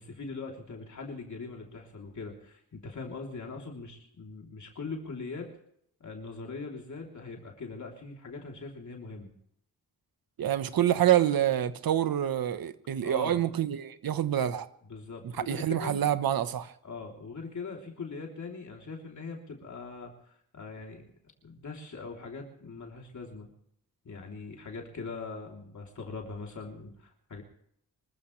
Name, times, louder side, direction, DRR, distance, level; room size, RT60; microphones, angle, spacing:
voice 1, 0.0-5.5 6.0-9.3 13.0-13.4 14.9-16.0 16.8-21.1 21.4-23.5 24.0-27.4, left 4 dB, 55° left, 3.4 m, -41 dB
voice 2, 10.4-14.7 15.3-16.7, right 11 dB, 80° right, 1.2 m, -27 dB
25.5 x 14.5 x 3.3 m
wide cardioid pair, 110°, 35 cm